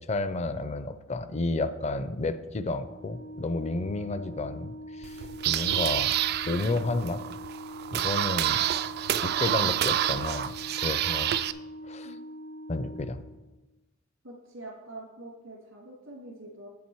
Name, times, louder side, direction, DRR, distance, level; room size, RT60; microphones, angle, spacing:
voice 1, 0.0-6.1 6.5-7.2 7.9-8.6 9.2-10.5 10.8-11.3 11.8-12.1 12.7-13.3, left 2 dB, 35° left, 12 dB, 0.5 m, -31 dB
Organ, 2.8-13.7, equal, 75° left, 1.4 m, -43 dB
sound 1, 5.0-11.5, right 11 dB, 50° right, 0.3 m, -28 dB
voice 2, 14.2-16.7, right 1 dB, 85° right, -6 dB, 2.2 m, -45 dB
8.1 x 7.3 x 4.6 m, 1.1 s
head